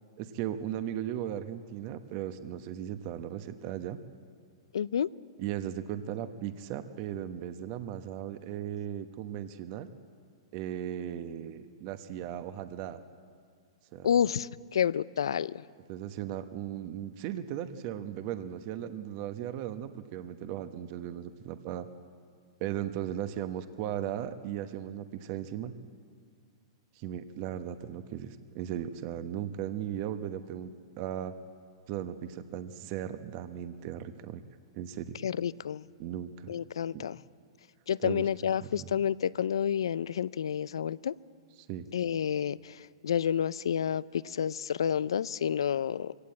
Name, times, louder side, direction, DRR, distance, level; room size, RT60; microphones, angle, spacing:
voice 1, 0.2-4.0 5.4-9.9 10.5-13.0 13.9-14.1 15.9-21.9 22.6-25.7 27.0-31.3 31.9-34.4 34.7-35.2 36.0-36.5 36.9-37.1 38.0-38.3 38.6-38.9 41.7-41.9, right 10 dB, 45° right, 10 dB, 1.1 m, -37 dB
voice 2, 4.7-5.1 14.0-15.6 35.2-35.8 36.5-37.2 37.9-41.1 41.9-42.7 43.0-46.1, left 8 dB, 80° left, 20 dB, 0.5 m, -29 dB
22.5 x 16.5 x 8.6 m, 2.1 s
hypercardioid pair, 120°, 3 cm